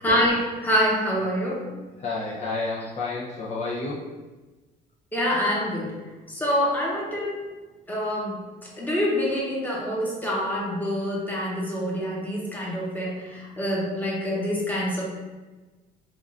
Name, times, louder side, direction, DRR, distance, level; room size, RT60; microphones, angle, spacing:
voice 1, 0.0-1.6 5.1-6.0 6.3-7.3 7.9-8.4 8.8-15.0, equal, 10° left, -4 dB, 1.1 m, -26 dB
voice 2, 2.0-4.1, left 3 dB, 45° left, -5 dB, 0.6 m, -30 dB
3.7 x 2.4 x 3.6 m, 1.2 s
cardioid pair, 110°, 17 cm